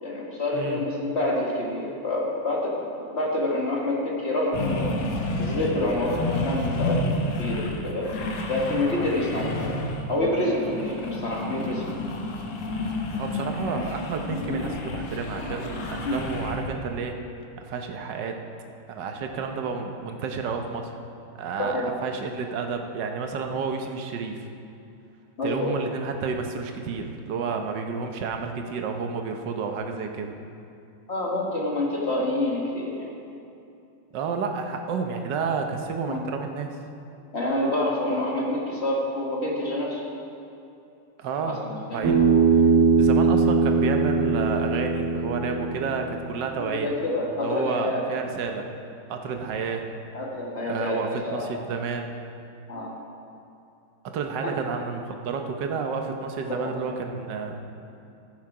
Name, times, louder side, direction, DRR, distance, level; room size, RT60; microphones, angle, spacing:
voice 1, 0.0-2.8 3.1-5.0 5.4-7.0 7.4-8.1 8.5-9.7 10.1-11.9 16.0-16.2 21.6-21.9 25.4-25.7 31.1-33.1 36.1-36.2 37.3-40.0 41.5-42.0 46.6-48.1 50.1-51.0 51.2-51.4 52.7-52.9 56.5-56.7, left 1 dB, 35° left, -3 dB, 1.5 m, -27 dB
voice 2, 0.5-0.8 10.7-10.8 13.1-17.2 17.6-18.4 18.9-20.9 21.4-24.5 25.4-30.3 34.1-36.8 41.2-41.6 41.9-42.2 43.0-46.9 47.4-48.7 49.1-49.9 50.6-52.1 54.0-57.6, right 5 dB, 65° right, 4 dB, 1.3 m, -30 dB
sound 1, 4.5-16.8, left 2 dB, 85° left, 2.0 m, -30 dB
Bass guitar, 42.0-46.4, right 4 dB, 50° right, 2.4 m, -21 dB
14.5 x 6.6 x 4.9 m, 2.6 s
omnidirectional pair, 2.4 m